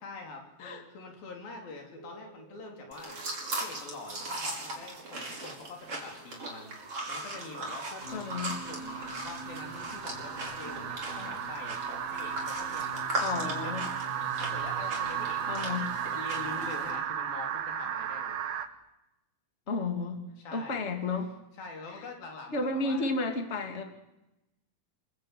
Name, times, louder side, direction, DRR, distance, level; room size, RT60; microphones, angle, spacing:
voice 1, 0.0-8.2 8.6-13.0 13.4-13.8 14.4-15.6 16.1-18.5 20.4-20.8 21.6-23.1, left 3 dB, 75° left, 2 dB, 5.4 m, -45 dB
sound 1, 2.0-3.6 3.9-4.6 6.2-18.7, right 9 dB, 65° right, 3.1 m, -36 dB
sound 2, 2.9-16.9, right 2 dB, 40° right, 5.8 m, -39 dB
sound 3, 8.0-17.0, equal, 90° left, 7.5 m, -45 dB
voice 2, 8.1-8.6 13.2-13.9 15.5-15.9 19.7-20.2 20.5-21.3 21.9-22.0 22.5-23.8, left 3 dB, 20° left, 5 dB, 2.5 m, -32 dB
28.0 x 20.0 x 9.2 m, 0.94 s
omnidirectional pair, 4.2 m